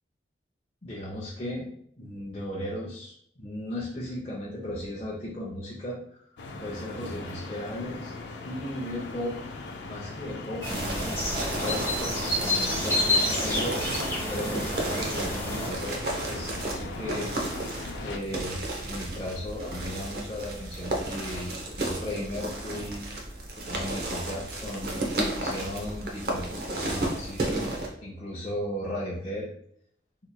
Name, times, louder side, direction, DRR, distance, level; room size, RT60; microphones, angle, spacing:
voice 1, 0.8-1.7 2.0-6.2 6.6-8.1 8.4-11.2 11.5-14.0 14.3-16.0 16.3-17.3 18.0-23.2 23.6-27.4 28.0-29.5, left 1 dB, 30° left, -6 dB, 0.6 m, -36 dB
sound 1, 6.4-18.2, left 3 dB, 85° left, 0.4 m, -39 dB
sound 2, 10.6-15.7, left 1 dB, 15° left, 0.9 m, -29 dB
sound 3, 10.6-27.9, right 2 dB, 55° right, 0.7 m, -33 dB
4.1 x 3.0 x 2.2 m, 0.66 s
head